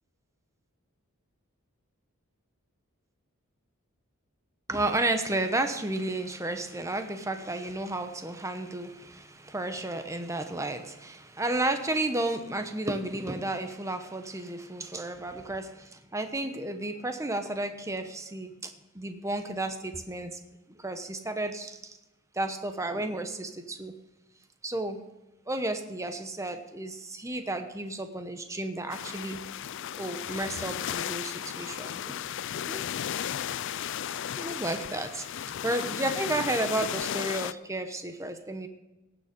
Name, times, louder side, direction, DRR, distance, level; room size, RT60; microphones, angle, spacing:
voice 1, 4.7-20.4 20.8-22.0 22.3-23.9 24.6-25.0 25.5-29.4 30.0-32.2 32.7-32.9 34.4-35.2 35.6-38.7, right 2 dB, 15° right, 7 dB, 1.0 m, -32 dB
sound 1, 28.9-37.5, left 9 dB, 55° left, 0.4 m, -35 dB
17.5 x 7.1 x 5.3 m, 1.0 s
head